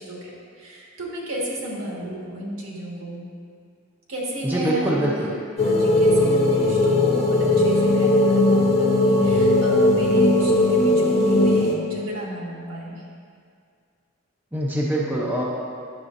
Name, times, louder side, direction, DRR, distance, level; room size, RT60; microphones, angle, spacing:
voice 1, 0.0-3.2 4.1-5.1 5.6-13.0, right 1 dB, 70° right, -4 dB, 1.6 m, -33 dB
voice 2, 4.4-5.3 14.5-15.4, right 1 dB, 10° right, -4 dB, 0.5 m, -24 dB
sound 1, 5.6-11.7, left 1 dB, 30° left, 0.8 m, -18 dB
9.6 x 6.8 x 2.6 m, 2.2 s
head